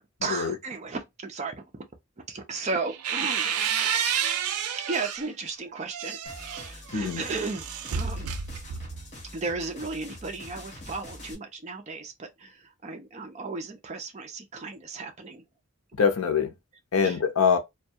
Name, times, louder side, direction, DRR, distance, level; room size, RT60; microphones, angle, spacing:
voice 1, 0.2-1.8 2.2-3.5 4.8-7.7 8.0-8.3 9.3-15.4 17.0-17.2, right 3 dB, 30° right, 0.4 m, -35 dB
sound 1, 2.6-5.3 5.8-9.1, right 7 dB, 90° right, 0.4 m, -30 dB
sound 2, 6.2-11.3, left 1 dB, 30° left, 0.7 m, -45 dB
voice 2, 16.0-16.5 16.9-17.6, left 6 dB, 75° left, 0.6 m, -23 dB
2.2 x 2.1 x 2.6 m
head